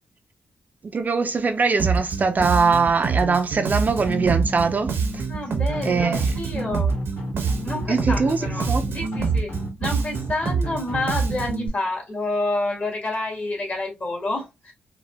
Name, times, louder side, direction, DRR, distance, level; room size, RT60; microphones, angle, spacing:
voice 1, 0.8-5.2 5.8-6.2 7.9-8.8, right 4 dB, 45° right, 0.5 m, -22 dB
Bass guitar, 1.8-11.7, right 5 dB, 70° right, 0.8 m, -26 dB
sound 1, 4.0-11.0, left 2 dB, 75° left, 1.3 m, -34 dB
voice 2, 5.2-7.0 7.6-9.5 9.8-14.7, left 2 dB, 40° left, 1.8 m, -29 dB
3.9 x 2.3 x 2.2 m
cardioid pair, 70°, 4 cm